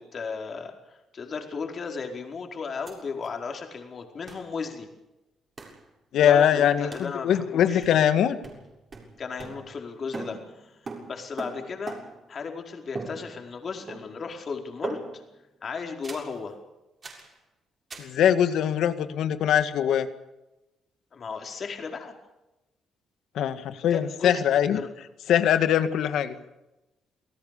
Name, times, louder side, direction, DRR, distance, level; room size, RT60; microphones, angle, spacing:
voice 1, 0.0-4.9 6.2-8.0 9.2-10.7 11.1-12.0 12.3-15.0 15.6-16.6 21.1-22.1 23.6-24.4 24.7-24.9, left 5 dB, 45° left, 3 dB, 4.8 m, -35 dB
sound 1, 2.9-3.0 3.2-3.3 4.3-4.5 5.6-5.8 6.9-7.2 7.8-8.2 8.4-9.9 10.1-12.3 12.9-13.6 13.9-14.3 14.8-15.3 16.0-16.4 17.0-17.3 17.9-18.2, right 3 dB, 35° right, 7.1 m, -40 dB
voice 2, 6.1-8.4 18.0-20.1 23.4-24.8 25.3-26.3, left 9 dB, 75° left, 11 dB, 1.9 m, -22 dB
28.0 x 18.0 x 6.9 m, 0.98 s
cardioid pair, 90°, 0 cm